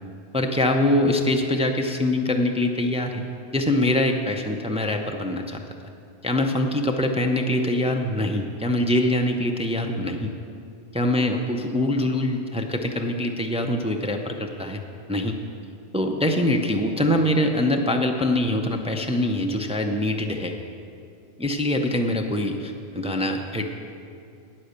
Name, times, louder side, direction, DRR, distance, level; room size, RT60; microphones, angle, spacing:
voice 1, 0.3-3.2 3.5-5.6 6.2-10.3 10.9-14.8 15.1-15.4 15.9-20.5 21.4-23.7, left 1 dB, 10° right, 3 dB, 0.4 m, -24 dB
10.0 x 8.9 x 6.7 m, 2.5 s
omnidirectional pair, 1.2 m